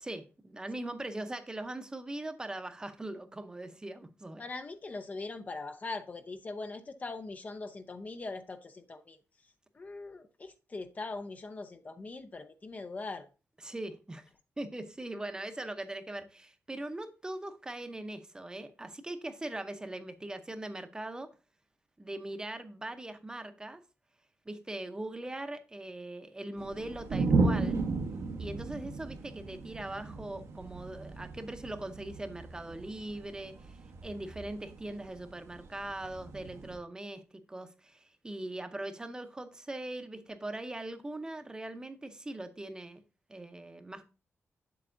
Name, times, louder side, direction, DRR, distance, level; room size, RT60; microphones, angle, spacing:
voice 1, 0.0-4.4 13.6-14.2 14.6-21.3 22.0-23.8 24.5-27.8 28.4-37.2 37.5-43.0 43.3-44.1, right 1 dB, 15° right, 0.7 m, -41 dB
voice 2, 4.4-9.2 9.7-13.3, left 3 dB, 35° left, 0.6 m, -41 dB
sound 1, 26.6-36.8, right 3 dB, 80° right, 1.1 m, -34 dB
7.7 x 7.2 x 2.6 m
wide cardioid pair, 130°, 5 cm